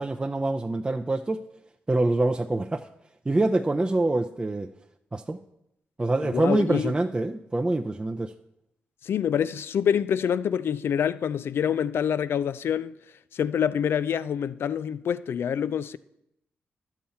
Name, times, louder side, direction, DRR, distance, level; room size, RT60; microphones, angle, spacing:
voice 1, 0.0-1.4 1.9-2.9 3.3-4.7 5.1-5.4 6.0-8.3, right 2 dB, 20° right, 0.4 m, -25 dB
voice 2, 6.2-6.9 9.0-12.9 13.3-16.0, left 8 dB, 70° left, 0.4 m, -26 dB
11.5 x 7.1 x 4.3 m
cardioid pair, 65°, 4 cm